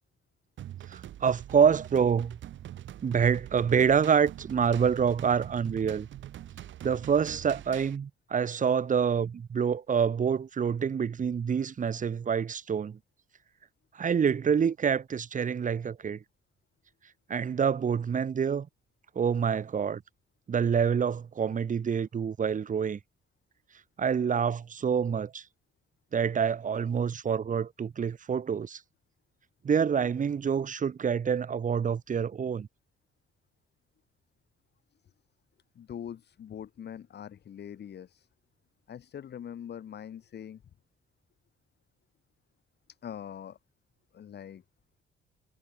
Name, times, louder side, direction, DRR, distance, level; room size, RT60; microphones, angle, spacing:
sound 1, 0.6-8.0, right 12 dB, 70° right, 2.0 m, -44 dB
voice 1, 0.9-2.4 3.0-6.1 6.8-13.0 13.9-16.2 17.3-18.7 19.1-20.0 20.5-23.0 24.0-25.4 26.1-28.8 29.6-32.7, right 7 dB, 40° right, 1.3 m, -27 dB
voice 2, 35.8-38.3 38.9-40.6 43.0-43.6 44.1-44.6, left 9 dB, 55° left, 2.3 m, -42 dB
cardioid pair, 90°, 20 cm